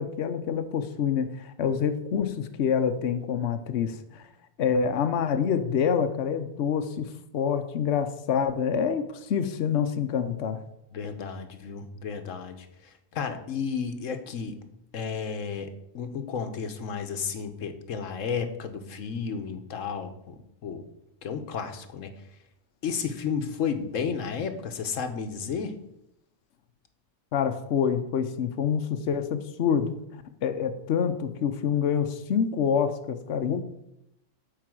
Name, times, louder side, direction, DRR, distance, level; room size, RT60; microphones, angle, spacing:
voice 1, 0.0-4.2 4.6-10.6 27.3-33.6, left 7 dB, 65° left, 7 dB, 1.0 m, -27 dB
voice 2, 10.9-14.6 14.9-20.9 21.2-22.1 22.8-25.7 33.5-33.6, left 6 dB, 85° left, 8 dB, 1.3 m, -32 dB
9.5 x 4.7 x 7.6 m, 0.81 s
omnidirectional pair, 1.3 m